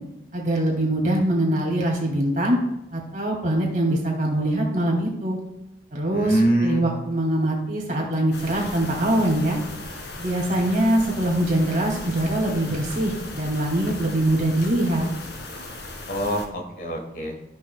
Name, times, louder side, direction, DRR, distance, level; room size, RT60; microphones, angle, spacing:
voice 1, 0.3-2.6 2.9-5.4 5.9-9.6 10.2-15.1, right 1 dB, 45° right, -1 dB, 2.5 m, -23 dB
voice 2, 6.1-6.8 16.1-17.4, right 1 dB, 50° left, 3 dB, 1.4 m, -24 dB
sound 1, 8.3-16.4, left 2 dB, 85° left, 1.9 m, -37 dB
14.0 x 6.3 x 2.3 m, 0.90 s
head